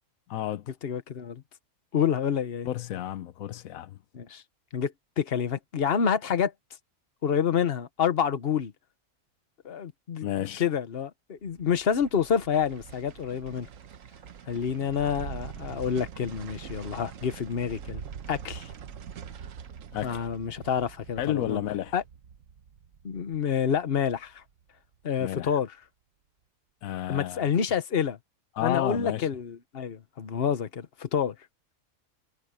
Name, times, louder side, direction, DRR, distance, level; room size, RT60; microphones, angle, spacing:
voice 1, 0.3-0.7 2.6-4.0 10.2-10.6 19.9-20.2 21.2-22.0 25.2-25.6 26.8-27.5 28.6-29.3, left 12 dB, 85° left, 1.1 m, -31 dB
voice 2, 0.8-1.4 1.9-2.7 4.1-4.4 4.7-6.5 7.2-8.7 9.6-10.3 10.6-13.7 14.5-18.0 18.3-18.7 20.0-21.6 21.9-22.0 23.0-24.4 25.0-25.7 27.1-28.2 28.6-31.3, left 7 dB, 50° left, 1.2 m, -28 dB
sound 1, 11.4-24.6 24.9-25.0, right 7 dB, 75° right, 1.3 m, -44 dB
omnidirectional pair, 1.4 m